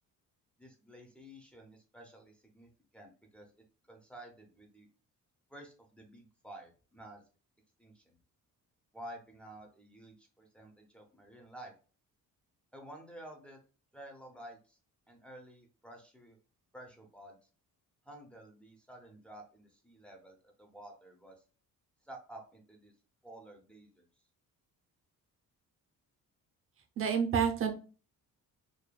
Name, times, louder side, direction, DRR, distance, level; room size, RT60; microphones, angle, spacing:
voice 1, 0.6-3.5 3.9-4.9 5.5-7.2 7.8-8.2 8.9-11.7 12.7-13.6 13.9-14.8 15.1-16.4 16.7-17.4 18.0-21.4 22.0-22.9 23.2-24.1, right 1 dB, 5° left, 1 dB, 0.7 m, -51 dB
voice 2, 27.0-27.7, right 7 dB, 40° right, 3 dB, 0.7 m, -28 dB
4.9 x 2.5 x 2.3 m, 0.37 s
cardioid pair, 150°, 34 cm